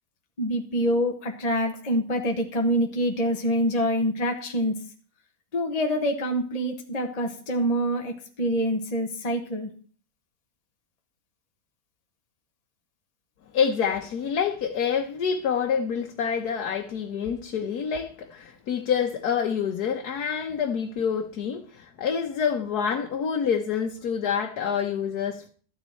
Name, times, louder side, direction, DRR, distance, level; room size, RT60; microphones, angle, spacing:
voice 1, 0.4-4.8 5.5-9.7, equal, 25° left, 1.3 m, -26 dB
voice 2, 13.5-25.5, left 7 dB, 90° left, 1.5 m, -27 dB
13.0 x 10.0 x 4.4 m
omnidirectional pair, 1.6 m